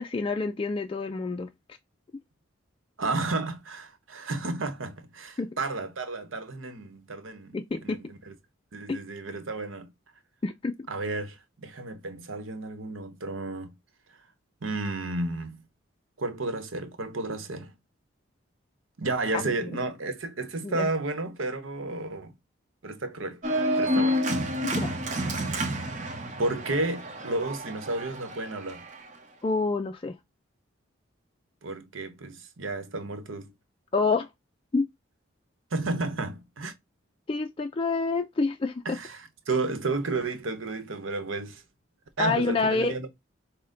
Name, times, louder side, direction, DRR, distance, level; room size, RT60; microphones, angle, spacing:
voice 1, 0.0-1.5 5.4-5.5 7.5-8.0 8.9-9.0 10.4-10.8 19.3-19.4 20.6-20.9 24.7-24.9 29.4-30.2 33.9-34.3 34.7-34.9 37.3-39.0 42.2-42.9, left 3 dB, 25° left, 0.3 m, -27 dB
voice 2, 3.0-8.3 8.7-9.9 10.9-13.7 14.6-15.6 16.2-17.7 19.0-22.3 22.8-23.4 23.8-24.2 26.4-28.8 31.6-33.5 35.7-36.7 38.8-41.6 42.2-43.1, right 2 dB, 85° right, 0.9 m, -32 dB
Organ, 23.4-29.1, equal, 40° right, 1.0 m, -29 dB
6.3 x 2.1 x 3.8 m
head